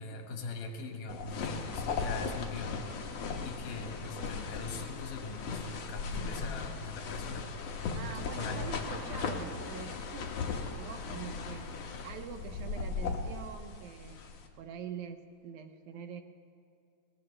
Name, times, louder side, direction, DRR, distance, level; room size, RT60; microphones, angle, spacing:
voice 1, 0.0-3.1 3.4-8.7, left 3 dB, 80° left, 3 dB, 3.0 m, -42 dB
sound 1, 1.1-14.5, left 4 dB, 60° left, 2.1 m, -38 dB
sound 2, 3.7-12.8, left 3 dB, 15° left, 0.5 m, -51 dB
voice 2, 8.0-11.7 12.0-14.2 14.6-16.2, right 7 dB, 75° right, 7 dB, 2.1 m, -45 dB
20.0 x 19.0 x 3.3 m, 2.4 s
omnidirectional pair, 3.7 m